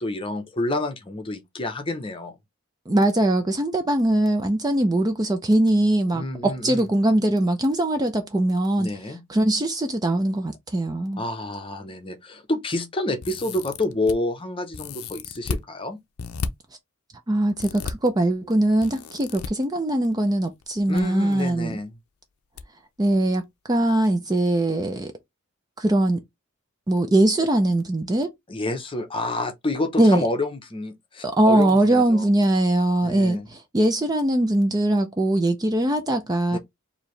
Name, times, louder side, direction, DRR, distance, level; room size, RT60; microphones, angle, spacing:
voice 1, 0.0-2.4 6.1-6.9 8.8-9.2 11.2-16.0 20.9-22.0 28.5-32.3 33.0-33.5 36.5-36.6, left 2 dB, 25° left, 0.7 m, -28 dB
voice 2, 2.9-8.9 9.3-11.2 17.3-21.8 23.0-25.1 25.8-26.2 26.9-28.3 30.0-30.2 31.2-36.6, right 1 dB, 20° right, 0.4 m, -21 dB
sound 1, 13.2-14.1 14.7-15.6 16.2-16.5 17.6-17.9 18.8-19.5 20.6-21.0 21.3-21.4 22.6-22.7 23.0-23.2, left 5 dB, 80° left, 0.6 m, -33 dB
4.7 x 2.7 x 3.2 m
head